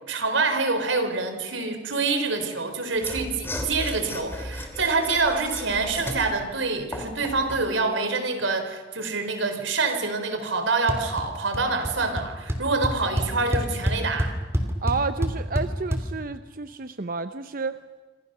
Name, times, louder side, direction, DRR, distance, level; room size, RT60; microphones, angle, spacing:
voice 1, 0.0-14.3, right 3 dB, 85° right, 7 dB, 3.9 m, -26 dB
Mechanisms / Sawing, 3.0-7.7, left 1 dB, 10° left, 2.9 m, -35 dB
sound 1, 10.9-11.3 11.5-11.9 12.2-12.3 12.5-16.0, equal, 15° right, 3.0 m, -25 dB
voice 2, 14.8-17.8, right 4 dB, 45° right, 10 dB, 0.7 m, -30 dB
27.5 x 26.5 x 6.7 m, 1.3 s
head